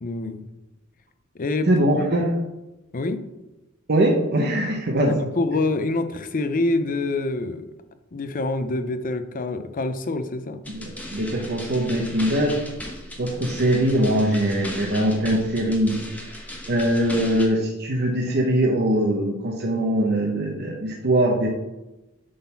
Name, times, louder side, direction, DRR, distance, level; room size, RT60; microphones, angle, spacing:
voice 1, 0.0-0.5 1.3-1.8 2.2-2.3 2.9-3.2 5.1-7.7 8.1-10.6 17.2-17.6, left 2 dB, 40° left, 10 dB, 0.6 m, -26 dB
voice 2, 1.7-2.3 3.9-5.2 10.7-12.5 13.2-16.0 16.7-21.5, right 1 dB, 55° right, 0 dB, 0.9 m, -22 dB
sound 1, 10.7-17.5, left 1 dB, 10° left, 1.1 m, -37 dB
7.7 x 4.0 x 5.7 m, 1.0 s
head